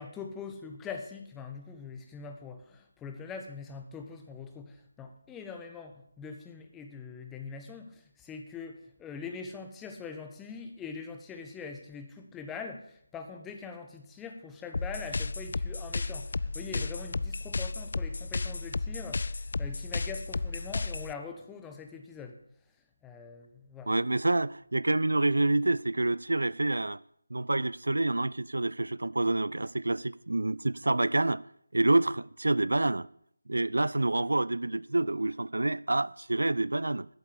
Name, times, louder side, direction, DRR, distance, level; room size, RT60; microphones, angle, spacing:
voice 1, 0.0-19.3 19.6-22.4 23.0-23.9, left 5 dB, 10° left, 1.3 m, -43 dB
sound 1, 14.7-21.1, left 3 dB, 55° left, 0.5 m, -33 dB
voice 2, 23.9-27.0 27.3-31.4 31.7-33.1 33.5-37.1, right 2 dB, 75° right, 0.4 m, -27 dB
12.5 x 7.9 x 8.1 m
figure-of-eight pair, 160°, 0 cm